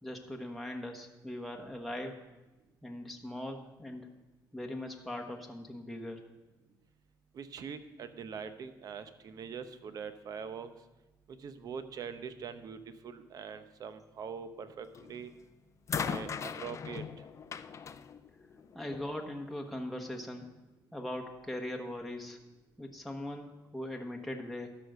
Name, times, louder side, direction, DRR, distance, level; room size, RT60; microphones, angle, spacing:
voice 1, 0.0-2.2 2.8-4.0 4.5-6.2 18.7-20.5 20.9-22.4 22.8-24.8, left 1 dB, ahead, 1 dB, 1.1 m, -40 dB
voice 2, 7.3-10.7 11.3-12.8 13.0-15.3 16.0-17.0, right 6 dB, 55° right, 10 dB, 0.8 m, -43 dB
sound 1, 14.9-15.3 15.9-19.1 20.2-20.3, left 6 dB, 40° left, 0.4 m, -39 dB
12.5 x 5.2 x 6.6 m, 1.1 s
cardioid pair, 110°, 8 cm